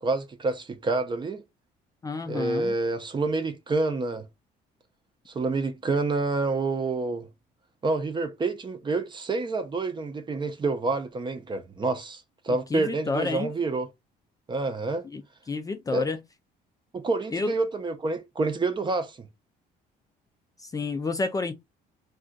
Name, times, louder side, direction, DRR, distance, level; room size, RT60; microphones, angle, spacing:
voice 1, 0.0-1.4 2.3-4.3 5.3-7.3 7.8-13.9 14.5-15.1 15.9-16.0 16.9-19.3, right 3 dB, 30° right, 0.6 m, -28 dB
voice 2, 2.0-2.7 12.5-13.5 15.0-15.2 15.5-16.2 17.3-17.5 20.6-21.5, left 3 dB, 20° left, 0.4 m, -30 dB
2.4 x 2.4 x 3.8 m
cardioid pair, 110°, 17 cm